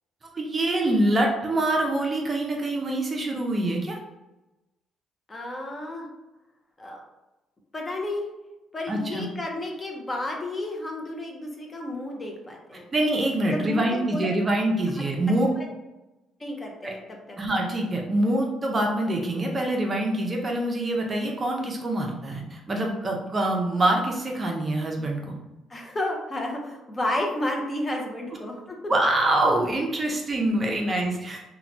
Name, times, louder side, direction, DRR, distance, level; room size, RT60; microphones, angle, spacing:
voice 1, 0.3-4.0 8.9-9.2 12.9-15.5 16.8-16.9 17.4-25.4 28.9-31.5, right 1 dB, 30° right, 1 dB, 0.5 m, -25 dB
voice 2, 5.3-6.1 6.8-7.0 7.7-8.2 8.7-12.9 13.5-14.3 15.0-15.1 16.4-17.0 17.3-17.4 25.7-28.8, left 1 dB, 25° left, 1 dB, 0.5 m, -31 dB
2.9 x 2.1 x 2.5 m, 1.0 s
cardioid pair, 105°, 0 cm